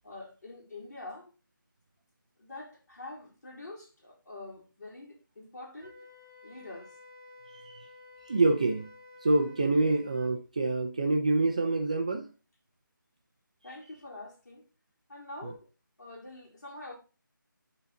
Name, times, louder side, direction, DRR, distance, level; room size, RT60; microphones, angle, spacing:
voice 1, 0.0-1.3 2.4-6.0 6.4-7.0 13.6-14.7 15.1-15.7 16.0-17.0, left 2 dB, 50° left, 3.8 m, -45 dB
Wind instrument woodwind instrument, 5.8-10.3, left 3 dB, 15° left, 3.1 m, -52 dB
voice 2, 7.5-7.9 8.2-8.9 9.2-12.3 15.4-15.5, right 2 dB, 20° right, 0.4 m, -26 dB
11.0 x 4.0 x 3.7 m
figure-of-eight pair, 170°, 11 cm